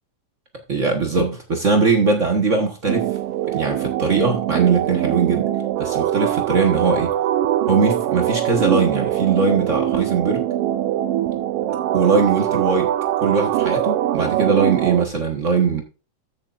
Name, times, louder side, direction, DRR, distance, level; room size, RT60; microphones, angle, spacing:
voice 1, 0.7-3.1 3.5-5.5 5.8-7.1 7.7-10.4 11.9-15.8, right 4 dB, 60° right, 0.8 m, -20 dB
sound 1, 2.9-15.1, right 12 dB, 80° right, 1.4 m, -22 dB
14.0 x 7.0 x 2.5 m
omnidirectional pair, 3.4 m